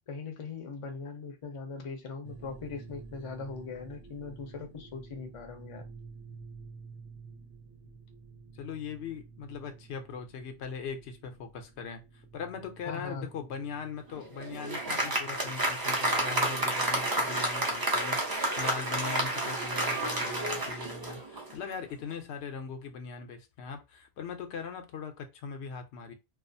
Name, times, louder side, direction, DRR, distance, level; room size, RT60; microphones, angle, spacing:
voice 1, 0.1-5.9 12.9-13.3, left 4 dB, 40° left, 0.5 m, -40 dB
sound 1, 2.2-20.5, right 4 dB, 70° right, 0.8 m, -52 dB
voice 2, 8.5-12.0 12.3-26.1, left 6 dB, 80° left, 0.8 m, -40 dB
Applause, 14.1-21.6, right 1 dB, 30° right, 0.4 m, -30 dB
2.4 x 2.3 x 2.5 m
omnidirectional pair, 1.1 m